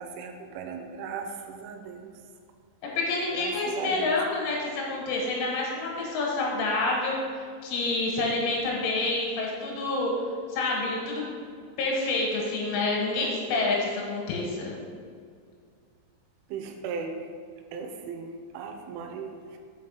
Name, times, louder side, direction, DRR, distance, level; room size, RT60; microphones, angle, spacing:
voice 1, 0.0-2.2 3.3-4.2 16.5-17.3 17.7-19.6, right 5 dB, 90° right, 5 dB, 3.1 m, -37 dB
voice 2, 2.8-10.1 10.5-11.2 11.8-14.8, left 3 dB, 85° left, -2 dB, 3.7 m, -28 dB
6.4 x 5.5 x 5.2 m, 2.1 s
omnidirectional pair, 5.5 m